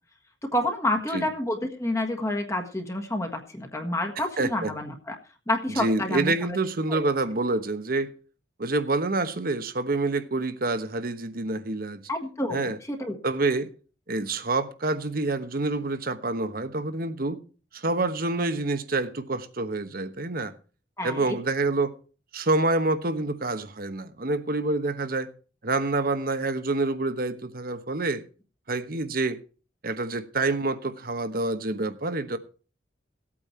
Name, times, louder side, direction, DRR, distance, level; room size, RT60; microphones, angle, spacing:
voice 1, 0.4-5.2 5.5-6.3 6.9-7.0 12.1-13.1 21.0-21.3, left 1 dB, 15° left, 1.5 m, -29 dB
voice 2, 4.4-4.7 5.7-8.1 8.6-12.0 12.5-12.8 13.2-13.7 14.1-17.4 17.7-20.5 21.0-21.9 22.3-25.3 25.6-28.2 28.7-29.4 29.8-32.4, right 2 dB, 50° right, 1.1 m, -27 dB
17.0 x 8.7 x 4.4 m
head